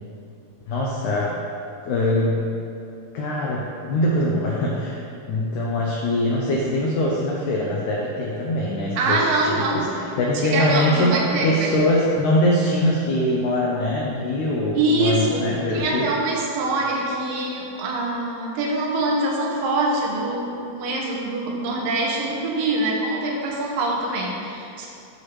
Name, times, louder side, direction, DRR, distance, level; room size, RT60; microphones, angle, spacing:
voice 1, 0.7-1.4 1.8-2.4 3.1-5.0 5.3-16.1, left 1 dB, 85° left, -3 dB, 1.7 m, -23 dB
voice 2, 9.0-9.8 10.3-11.7 14.7-15.4 15.7-24.9, right 2 dB, 75° right, -2 dB, 2.3 m, -24 dB
8.3 x 3.2 x 5.9 m, 2.8 s
omnidirectional pair, 4.4 m